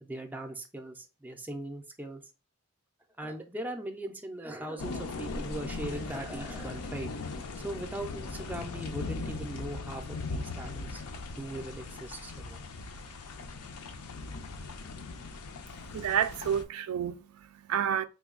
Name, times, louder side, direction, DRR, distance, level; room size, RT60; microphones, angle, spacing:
voice 1, 0.0-2.2 3.2-12.6, right 1 dB, 10° right, 0.4 m, -40 dB
sound 1, 4.8-16.6, left 3 dB, 90° left, 0.5 m, -39 dB
voice 2, 15.9-18.0, right 8 dB, 75° right, 0.3 m, -30 dB
3.3 x 2.3 x 3.6 m
head